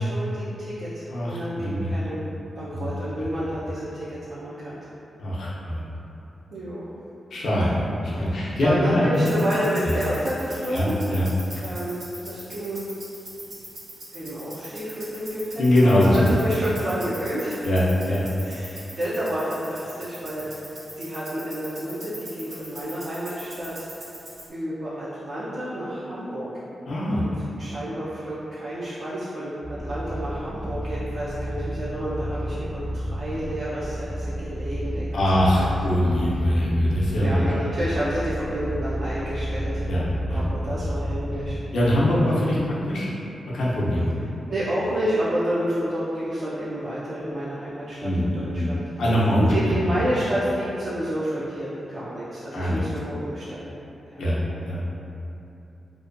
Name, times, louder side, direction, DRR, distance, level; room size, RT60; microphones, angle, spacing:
voice 1, 0.0-2.3 2.6-4.9 6.5-6.8 8.3-11.0 11.6-12.8 14.1-15.6 16.0-17.6 18.4-20.4 21.0-23.9 24.5-26.5 27.2-27.3 27.6-35.2 35.6-35.7 35.9-36.0 37.2-39.9 40.3-41.6 41.9-42.2 44.5-48.8 49.5-53.7 54.1-54.2, equal, 65° right, -11 dB, 0.4 m, -30 dB
voice 2, 1.1-2.1 2.7-2.9 3.2-3.3 5.2-5.8 7.3-7.7 8.1-9.4 9.8-9.9 10.7-11.3 15.6-16.3 17.6-18.2 26.9-27.3 35.1-37.6 39.8-40.4 41.7-43.1 43.5-44.1 48.0-50.0 52.5-52.8 54.2-54.8, left 1 dB, 80° left, -6 dB, 0.5 m, -22 dB
sound 1, 9.1-24.5, right 1 dB, 85° right, 0.9 m, -42 dB
sound 2, 29.6-42.1, equal, 20° left, 0.3 m, -31 dB
2.6 x 2.2 x 2.4 m, 2.9 s
cardioid pair, 85°, 0 cm